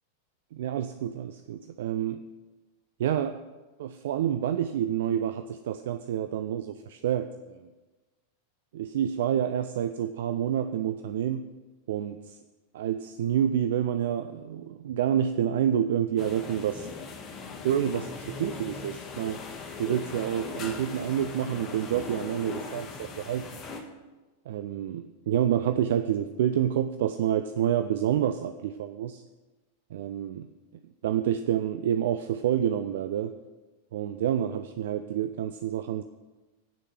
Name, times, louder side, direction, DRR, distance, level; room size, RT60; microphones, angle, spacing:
voice 1, 0.5-2.2 3.0-3.4 3.8-7.6 8.7-11.5 11.9-12.2 12.7-16.9 17.6-19.4 19.8-23.6 24.5-29.2 29.9-30.5 31.0-33.4 33.9-36.0, right 10 dB, 55° right, 10 dB, 0.4 m, -28 dB
sound 1, 16.2-23.8, left 5 dB, 30° left, 1.4 m, -40 dB
8.9 x 6.5 x 7.9 m, 1.2 s
figure-of-eight pair, 90°, 0 cm